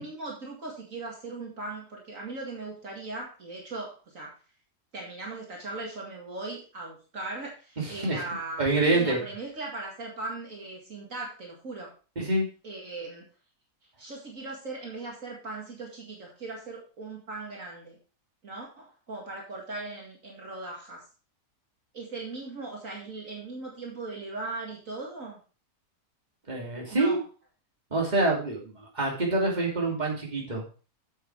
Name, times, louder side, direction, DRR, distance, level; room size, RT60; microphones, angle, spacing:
voice 1, 0.0-4.4 4.9-11.9 12.6-13.3 14.0-18.0 18.4-21.0 21.9-25.4 26.9-27.2, right 2 dB, 60° right, -2 dB, 2.6 m, -39 dB
voice 2, 7.8-8.2 8.6-9.2 12.2-12.5 26.5-27.2 27.9-30.6, right 2 dB, 30° right, -2 dB, 3.0 m, -26 dB
8.4 x 7.8 x 4.6 m, 0.36 s
omnidirectional pair, 1.6 m